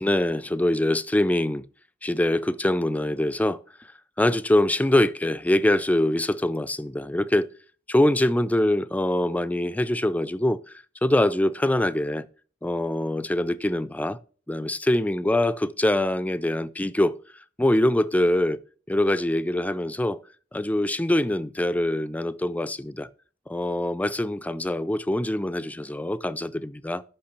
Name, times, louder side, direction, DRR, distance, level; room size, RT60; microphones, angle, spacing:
voice 1, 0.0-1.7 2.0-3.6 4.2-7.5 7.9-10.6 11.0-12.3 12.6-14.2 14.5-17.2 17.6-18.6 18.9-20.2 20.5-23.1 23.5-27.0, left 1 dB, 10° left, 0.4 m, -24 dB
8.7 x 5.8 x 5.8 m
head